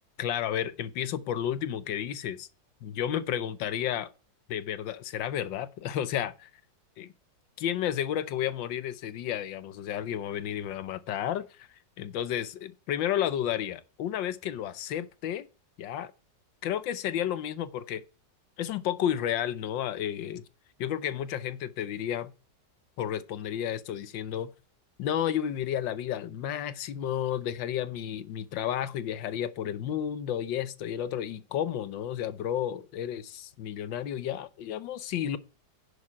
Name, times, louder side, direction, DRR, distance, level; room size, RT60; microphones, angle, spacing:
voice 1, 0.2-2.5 2.8-4.1 4.5-6.5 7.0-7.1 7.6-11.7 12.0-15.5 15.8-16.1 16.6-18.0 18.6-20.4 20.8-22.3 23.0-24.5 25.0-35.4, left 10 dB, 85° left, 1.5 m, -32 dB
10.0 x 6.4 x 4.7 m
omnidirectional pair, 2.0 m